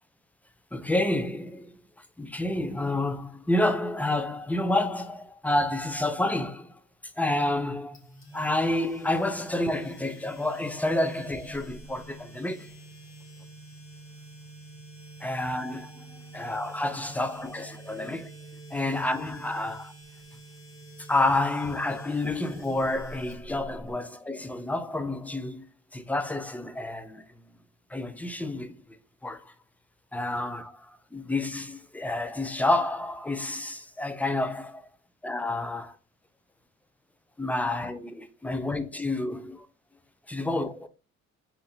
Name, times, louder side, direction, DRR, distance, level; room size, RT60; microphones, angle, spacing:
voice 1, 0.7-1.7 2.2-6.8 7.2-8.0 8.3-12.7 15.2-18.3 18.7-19.9 21.1-25.7 25.9-27.2 27.9-28.8 29.2-29.5 30.1-34.9 35.2-36.0 37.4-39.7 40.3-40.9, left 2 dB, 5° left, 0.5 m, -29 dB
sound 1, 7.9-23.9, right 2 dB, 45° left, 2.2 m, -46 dB
4.3 x 2.8 x 3.9 m
cardioid pair, 90°, 30 cm